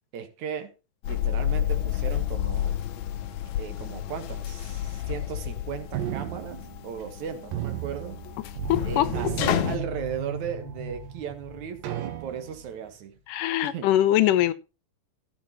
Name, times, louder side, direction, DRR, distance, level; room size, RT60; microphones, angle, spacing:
voice 1, 0.1-0.7 1.1-2.8 3.6-8.2 8.8-13.2 13.6-13.9, right 8 dB, 65° right, 2.7 m, -36 dB
sound 1, 1.0-9.8, left 11 dB, 70° left, 2.0 m, -30 dB
sound 2, 5.9-7.2 7.5-8.8 9.1-10.4 11.0-11.1 11.8-12.7, right 12 dB, 90° right, 2.9 m, -34 dB
sound 3, 8.6-12.6, right 2 dB, 5° right, 5.1 m, -38 dB
voice 2, 8.7-9.3 13.3-14.5, left 13 dB, 85° left, 2.4 m, -22 dB
15.0 x 8.2 x 3.0 m
omnidirectional pair, 3.8 m